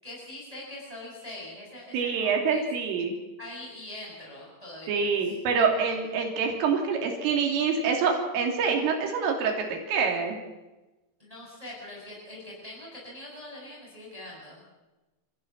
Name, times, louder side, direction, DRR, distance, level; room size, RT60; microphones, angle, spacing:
voice 1, 0.0-2.7 3.4-5.3 11.2-14.7, left 1 dB, 5° right, -4 dB, 7.5 m, -43 dB
voice 2, 1.9-3.2 4.9-10.4, right 5 dB, 90° right, 1 dB, 5.6 m, -26 dB
27.5 x 15.5 x 7.5 m, 1.1 s
omnidirectional pair, 5.6 m